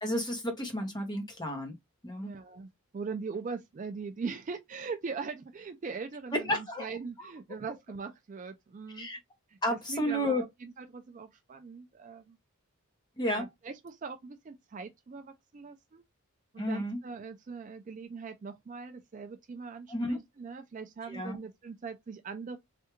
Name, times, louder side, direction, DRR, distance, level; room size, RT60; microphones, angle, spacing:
voice 1, 0.0-1.7 2.0-2.3 6.3-6.9 7.2-7.3 9.0-9.2 9.6-10.4 13.2-13.5 16.6-17.0 19.9-20.2 21.1-21.4, equal, 20° left, 0.8 m, -32 dB
voice 2, 2.2-9.1 9.5-12.4 13.3-16.0 16.5-22.6, right 5 dB, 35° right, 0.3 m, -41 dB
3.3 x 2.3 x 3.0 m
head